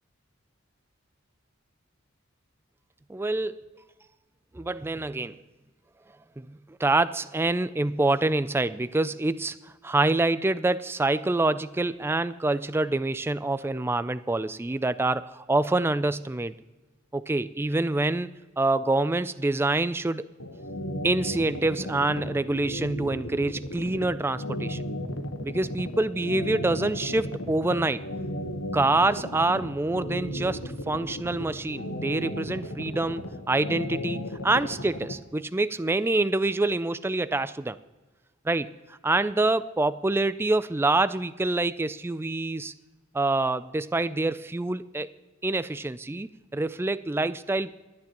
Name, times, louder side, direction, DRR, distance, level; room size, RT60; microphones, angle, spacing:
voice 1, 3.1-3.7 4.5-5.4 6.4-6.5 6.8-16.5 17.1-18.3 18.6-20.3 21.0-24.8 25.4-28.0 28.7-37.8 38.4-42.7 43.1-45.1 45.4-47.7, right 2 dB, 10° right, 14 dB, 0.3 m, -26 dB
sound 1, 20.4-35.1, equal, 80° left, 1.2 m, -34 dB
27.0 x 9.7 x 3.0 m, 1.2 s
head